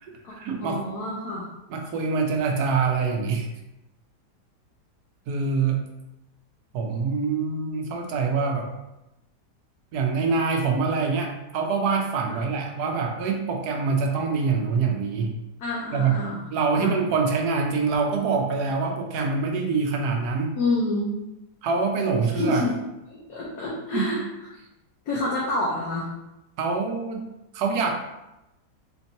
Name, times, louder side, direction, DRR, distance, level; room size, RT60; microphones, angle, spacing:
voice 1, 0.0-0.8 1.7-3.5 5.3-5.8 6.7-8.7 9.9-15.3 15.9-16.2 16.5-20.6 21.6-22.7 23.9-24.2 26.6-27.3 27.5-27.9, right 4 dB, 75° right, 2 dB, 1.1 m, -25 dB
voice 2, 0.6-1.5 12.3-12.4 15.6-16.4 16.8-17.0 20.6-21.1 22.3-22.8 23.1-24.2 25.1-26.1, left 2 dB, 65° left, -5 dB, 1.2 m, -28 dB
4.3 x 2.7 x 2.7 m, 0.93 s
omnidirectional pair, 1.8 m